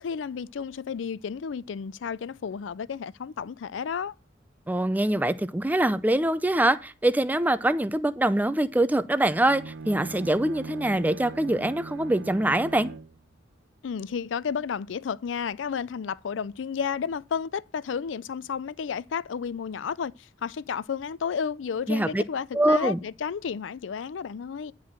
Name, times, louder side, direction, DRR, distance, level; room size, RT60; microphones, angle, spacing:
voice 1, 0.0-4.1 13.8-24.7, left 6 dB, 85° left, 0.4 m, -32 dB
voice 2, 4.7-12.9 21.9-22.2 22.5-23.0, right 1 dB, 10° right, 0.5 m, -24 dB
Bowed string instrument, 9.4-13.2, right 4 dB, 70° right, 0.5 m, -40 dB
10.0 x 4.8 x 7.4 m
head